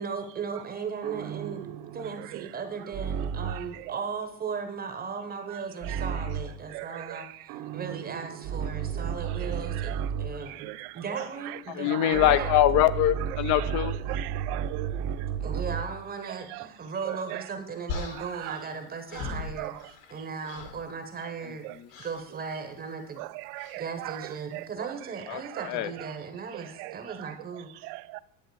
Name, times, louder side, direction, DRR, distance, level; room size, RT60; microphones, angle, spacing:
voice 1, 0.0-1.7 1.9-10.7 10.9-12.5 15.4-21.6 22.0-23.2 23.8-27.8, right 5 dB, 20° right, 0.8 m, -37 dB
sound 1, 1.0-3.8 5.8-6.6 7.5-10.5 12.1-16.0, right 8 dB, 50° right, 0.9 m, -33 dB
voice 2, 3.5-4.0 5.9-6.0 6.7-7.3 8.9-10.1 10.5-11.6 11.9-12.5 13.5-15.3 16.5-16.7 17.0-17.4 18.2-18.6 19.2-19.7 21.6-21.7 23.2-24.9 25.5-25.7 26.8-27.3 27.8-28.2, right 20 dB, 70° right, 0.5 m, -39 dB
voice 3, 11.7-13.9 25.3-25.9, left 14 dB, 40° left, 0.5 m, -23 dB
sound 2, 17.9-20.2 20.4-20.9 21.9-22.2 23.6-23.8, left 4 dB, 60° left, 1.8 m, -38 dB
10.5 x 7.7 x 4.6 m
supercardioid pair, 150°, 46 cm